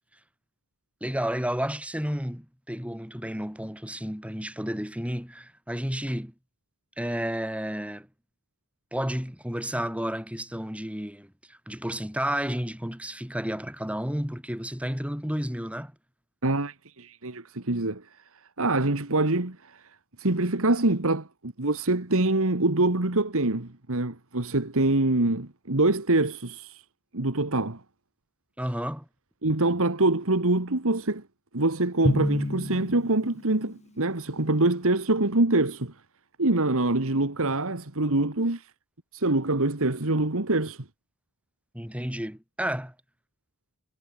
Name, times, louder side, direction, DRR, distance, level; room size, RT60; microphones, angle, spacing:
voice 1, 1.0-6.3 7.0-8.1 8.9-15.9 28.6-29.1 41.7-42.9, equal, 5° right, 7.0 m, -31 dB
voice 2, 16.4-18.1 18.6-19.8 20.2-26.9 27.1-27.8 29.4-31.2 31.5-35.9 36.4-38.7 39.1-40.9, right 2 dB, 65° right, 2.1 m, -25 dB
Drum, 32.0-33.8, equal, 30° left, 6.4 m, -29 dB
head